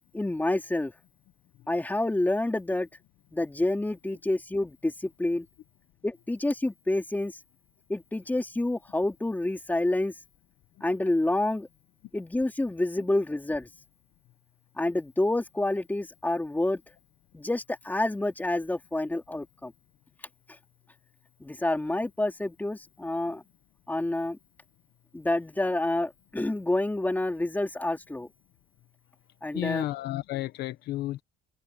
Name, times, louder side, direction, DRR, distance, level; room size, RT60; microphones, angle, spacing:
voice 1, 0.1-0.9 1.7-2.9 3.3-5.5 6.0-7.3 7.9-10.1 10.8-11.7 12.1-13.7 14.8-16.8 17.3-19.7 21.4-23.4 23.9-24.4 25.1-28.3 29.4-29.8, left 2 dB, 10° left, 3.9 m, -28 dB
voice 2, 29.5-31.2, left 15 dB, 80° left, 1.1 m, -32 dB
cardioid pair, 110°, 17 cm